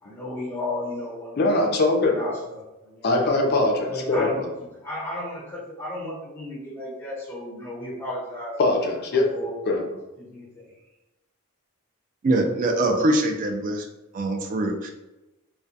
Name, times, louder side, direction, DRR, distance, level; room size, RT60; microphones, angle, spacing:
voice 1, 0.0-1.4 2.0-3.1 3.8-4.5 4.8-8.6 9.1-9.5 10.2-10.7, left 1 dB, 10° left, -7 dB, 1.0 m, -34 dB
voice 2, 1.4-2.2 3.0-4.5 8.6-9.3 9.7-9.8, left 2 dB, 45° left, 2 dB, 0.4 m, -22 dB
voice 3, 12.2-13.8 14.1-14.9, right 1 dB, 35° right, 3 dB, 0.3 m, -23 dB
2.2 x 2.1 x 2.6 m, 0.99 s
head